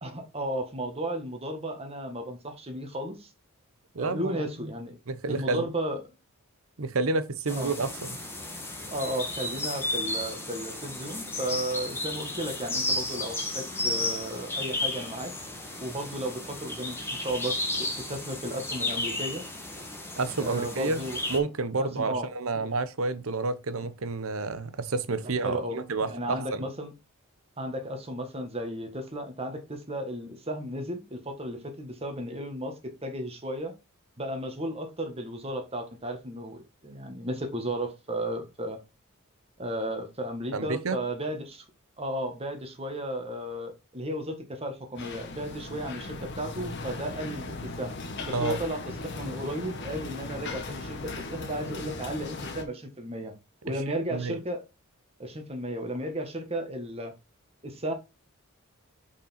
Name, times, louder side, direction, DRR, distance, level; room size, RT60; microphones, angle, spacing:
voice 1, 0.0-3.3 4.0-4.9 5.2-6.0 7.5-7.7 8.6-15.3 15.8-19.4 20.4-21.2 21.8-22.3 25.4-26.9 27.6-33.7 34.2-38.8 39.6-41.6 42.0-47.9 48.2-53.3 53.6-54.6 55.2-57.1 57.6-57.9, right 1 dB, 30° right, 1.6 m, -34 dB
voice 2, 3.9-4.4 5.1-5.7 6.8-8.2 20.2-26.6 40.5-41.0 48.3-48.6 54.1-54.4, right 3 dB, 75° right, 0.9 m, -30 dB
sound 1, 7.5-21.4, left 2 dB, 10° left, 1.6 m, -33 dB
sound 2, 45.0-52.6, left 3 dB, 55° left, 1.4 m, -38 dB
5.8 x 5.2 x 4.3 m
head